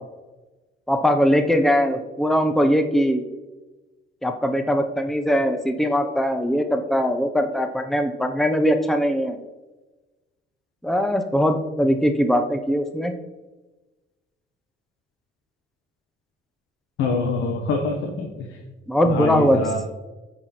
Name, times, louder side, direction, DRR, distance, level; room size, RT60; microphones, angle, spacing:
voice 1, 0.9-3.2 4.2-9.4 10.8-13.2 18.9-19.6, equal, ahead, 6 dB, 0.9 m, -21 dB
voice 2, 17.0-18.6 19.0-19.8, left 3 dB, 90° left, 3 dB, 1.2 m, -25 dB
9.5 x 4.7 x 5.9 m, 1.1 s
cardioid pair, 90°, 20 cm